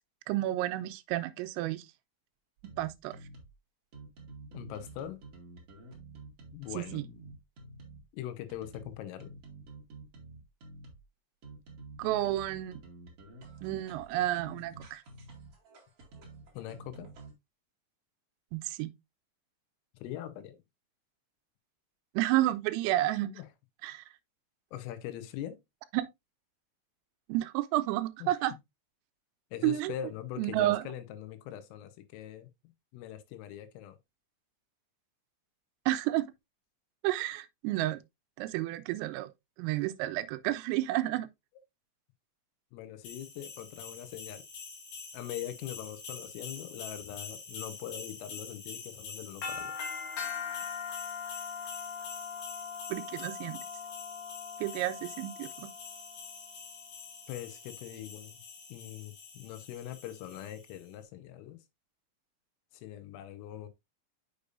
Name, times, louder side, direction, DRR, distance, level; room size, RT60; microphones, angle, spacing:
voice 1, 0.3-1.9 2.8-3.2 6.7-7.0 12.0-12.8 13.6-15.0 18.5-18.9 22.2-23.3 23.8-24.0 25.9-26.1 27.3-28.5 29.6-29.9 30.4-30.8 35.9-36.3 37.0-38.0 38.4-39.3 39.6-41.3 52.9-53.6 54.6-55.7, right 15 dB, 85° right, 3.2 m, -31 dB
sound 1, 2.6-3.5 3.9-8.1 8.5-11.0 11.4-17.3, right 3 dB, 65° right, 1.5 m, -49 dB
voice 2, 4.5-5.2 6.5-7.0 8.1-9.3 16.5-17.1 20.0-20.6 23.2-23.5 24.7-25.6 28.2-28.3 29.5-32.5 32.9-34.0 42.7-44.4 45.1-49.7 57.3-58.4 58.7-61.6 62.7-63.7, left 11 dB, 80° left, 3.5 m, -42 dB
sound 2, 43.0-60.8, left 6 dB, 55° left, 3.1 m, -42 dB
6.8 x 6.6 x 2.5 m
omnidirectional pair, 6.0 m